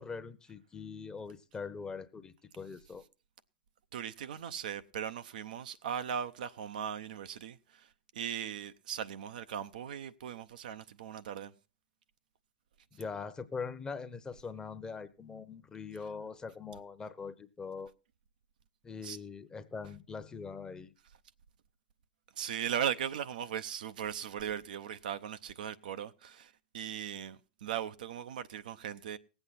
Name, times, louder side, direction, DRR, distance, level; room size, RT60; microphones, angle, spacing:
voice 1, 0.0-3.0 12.9-17.9 18.8-20.9, left 5 dB, 15° left, 0.9 m, -42 dB
voice 2, 3.9-11.5 19.0-19.2 22.4-29.2, right 9 dB, 70° right, 0.6 m, -38 dB
18.5 x 8.1 x 4.1 m
hypercardioid pair, 105°, 5 cm